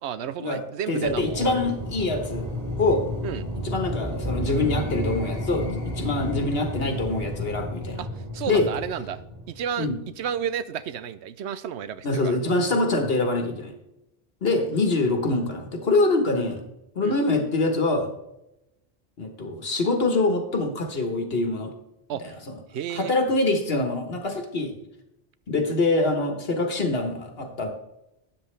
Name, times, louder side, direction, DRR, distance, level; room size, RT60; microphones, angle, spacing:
voice 1, 0.0-1.7 3.2-3.4 8.0-8.1 8.3-9.2 9.5-9.9 10.2-12.5 17.0-17.2 22.1-22.3 22.7-23.1, right 9 dB, 85° right, 15 dB, 0.9 m, -32 dB
voice 2, 0.9-2.5 2.8-3.0 3.6-8.0 8.5-8.7 9.8-10.0 12.0-13.7 14.4-16.6 16.9-18.1 19.2-21.7 22.2-22.6 22.9-24.7 25.5-27.7, left 2 dB, 65° left, 4 dB, 1.5 m, -24 dB
sound 1, 1.0-10.1, equal, 15° right, 4.5 m, -32 dB
13.0 x 8.6 x 3.3 m, 0.87 s
omnidirectional pair, 1.1 m